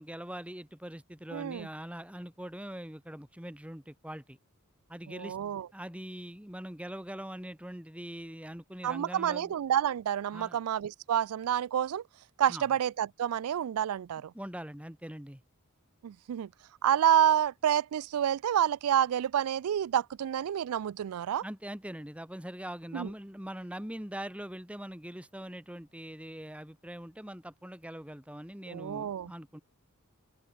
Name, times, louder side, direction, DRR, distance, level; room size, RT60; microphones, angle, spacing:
voice 1, 0.0-4.4 4.9-9.5 10.3-10.6 12.5-12.6 14.3-15.4 21.4-29.6, equal, 5° right, 2.0 m, -42 dB
voice 2, 1.3-1.7 5.1-5.7 8.8-12.0 12.4-14.3 16.0-16.5 16.8-21.4 22.9-23.1 28.7-29.3, right 10 dB, 75° right, 0.3 m, -28 dB
open air
head